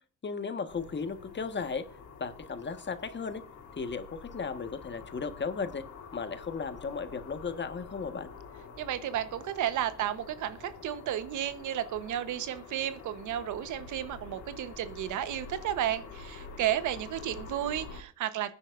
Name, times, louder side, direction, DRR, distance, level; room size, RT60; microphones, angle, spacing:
voice 1, 0.2-1.8 2.2-3.4 3.8-5.8 6.1-8.3, left 5 dB, 35° left, 9 dB, 1.5 m, -35 dB
sound 1, 0.7-18.0, left 5 dB, 75° left, 3.5 m, -47 dB
voice 2, 8.8-18.5, right 11 dB, 80° right, 13 dB, 1.1 m, -33 dB
26.0 x 10.0 x 2.6 m, 0.35 s
cardioid pair, 90°, 30 cm